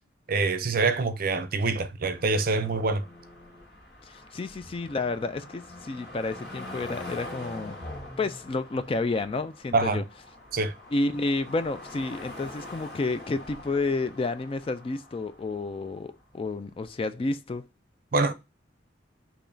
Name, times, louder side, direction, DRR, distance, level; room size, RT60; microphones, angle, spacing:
voice 1, 0.3-3.0 9.7-10.0 10.5-10.7 18.1-18.3, right 3 dB, 50° right, 0.5 m, -25 dB
sound 1, 2.0-16.1 16.8-16.9, left 1 dB, 65° left, 2.0 m, -44 dB
voice 2, 4.1-7.8 8.2-10.0 10.9-17.7, left 3 dB, 30° left, 0.3 m, -30 dB
6.7 x 3.0 x 2.6 m
head